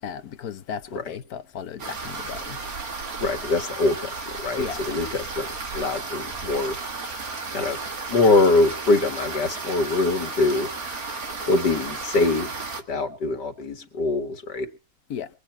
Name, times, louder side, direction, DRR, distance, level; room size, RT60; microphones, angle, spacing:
voice 1, 0.0-2.6 4.6-4.8 15.1-15.3, left 8 dB, 65° left, 1.4 m, -35 dB
sound 1, 1.8-12.8, right 4 dB, 60° right, 2.3 m, -34 dB
voice 2, 3.2-4.1 4.4-5.5 5.7-6.8 7.5-7.8 8.1-10.7 11.5-12.5 12.9-14.7, left 3 dB, 90° left, 2.5 m, -23 dB
24.0 x 8.7 x 4.6 m
omnidirectional pair, 1.8 m